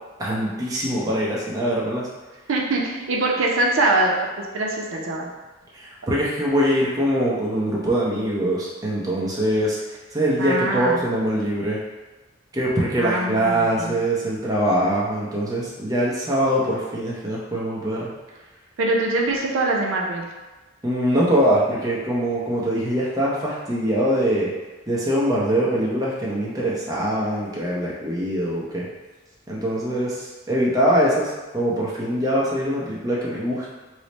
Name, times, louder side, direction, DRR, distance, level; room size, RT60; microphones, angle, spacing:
voice 1, 0.2-2.1 5.7-9.8 10.1-11.8 12.5-18.1 20.8-24.5 24.9-28.8 29.5-33.7, equal, 20° right, -5 dB, 0.6 m, -23 dB
voice 2, 2.5-5.3 10.4-11.0 13.0-14.0 18.8-20.3, right 2 dB, 85° right, -1 dB, 0.5 m, -23 dB
3.1 x 2.0 x 4.0 m, 1.2 s
head